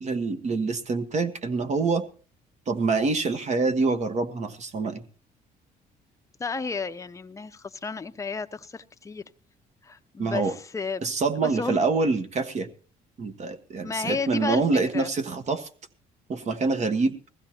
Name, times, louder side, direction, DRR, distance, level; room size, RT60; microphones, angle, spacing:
voice 1, 0.0-2.0 2.7-5.0 10.2-10.5 11.0-12.7 13.2-15.7 16.3-17.1, right 4 dB, 40° right, 1.4 m, -26 dB
voice 2, 6.4-9.2 9.8-11.0 11.4-11.8 13.8-14.6 14.9-15.1, left 4 dB, 20° left, 0.7 m, -32 dB
21.0 x 15.5 x 2.9 m
cardioid pair, 110°, 17 cm